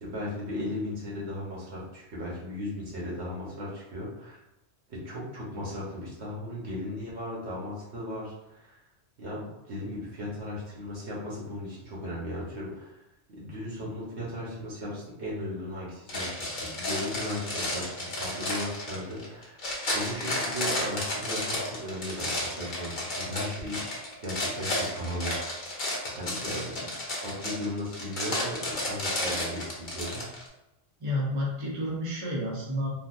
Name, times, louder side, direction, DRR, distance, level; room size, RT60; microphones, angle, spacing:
voice 1, 0.0-4.4 4.9-8.8 9.2-13.0 13.3-23.8 24.2-25.7 26.0-26.9 27.2-30.3, left 1 dB, 90° right, -6 dB, 1.4 m, -36 dB
sound 1, 16.1-30.5, left 1 dB, 50° left, 0.9 m, -32 dB
voice 2, 31.0-32.9, left 1 dB, 30° right, -5 dB, 0.8 m, -30 dB
3.8 x 2.4 x 2.5 m, 0.90 s
omnidirectional pair, 1.1 m